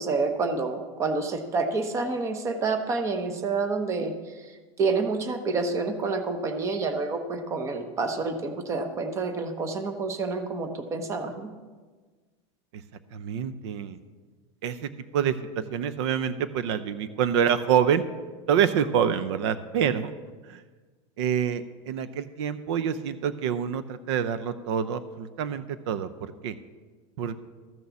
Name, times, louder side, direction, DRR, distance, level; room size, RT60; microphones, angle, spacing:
voice 1, 0.0-4.5 4.8-11.5, right 3 dB, 20° right, 7 dB, 0.9 m, -28 dB
voice 2, 13.1-14.0 14.6-18.0 18.5-20.1 20.5-20.6 21.2-26.5 27.2-27.3, right 8 dB, 65° right, 13 dB, 0.6 m, -27 dB
13.5 x 6.5 x 7.0 m, 1.4 s
supercardioid pair, 170°, 15 cm